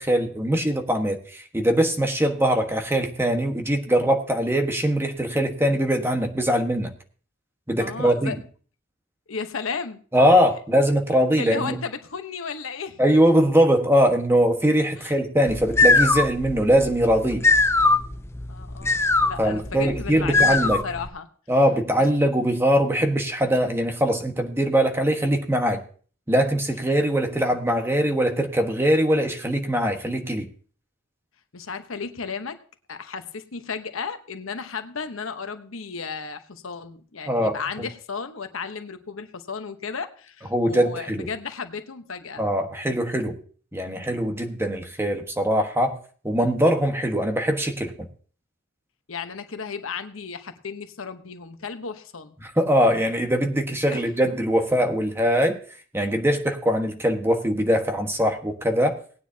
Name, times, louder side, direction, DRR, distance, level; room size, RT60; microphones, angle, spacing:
voice 1, 0.0-6.9 7.7-8.3 10.1-11.8 13.0-17.4 19.4-20.8 21.5-25.8 26.3-30.5 37.3-37.6 40.5-41.3 42.4-43.3 43.7-46.0 46.2-47.9 52.4-55.6 55.9-59.0, equal, 10° right, 4 dB, 1.4 m, -22 dB
voice 2, 7.8-8.4 9.3-10.0 11.4-13.0 15.0-15.2 18.5-21.3 22.0-22.1 31.5-32.6 32.9-42.5 49.1-52.3 53.9-54.0, left 5 dB, 80° left, 8 dB, 1.0 m, -34 dB
sound 1, 15.5-21.1, left 3 dB, 15° left, 0.5 m, -21 dB
18.5 x 9.5 x 2.8 m, 0.42 s
head